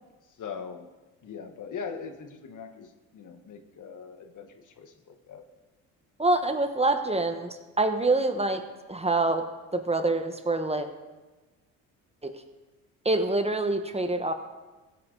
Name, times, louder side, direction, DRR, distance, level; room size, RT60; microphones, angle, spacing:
voice 1, 0.4-0.9 1.2-5.5, left 6 dB, 55° left, 7 dB, 1.4 m, -41 dB
voice 2, 6.2-8.6 8.9-9.4 9.7-10.9 12.2-12.3 13.0-14.3, right 2 dB, 15° right, 7 dB, 1.2 m, -26 dB
16.0 x 8.4 x 3.9 m, 1.2 s
supercardioid pair, 70°, 37 cm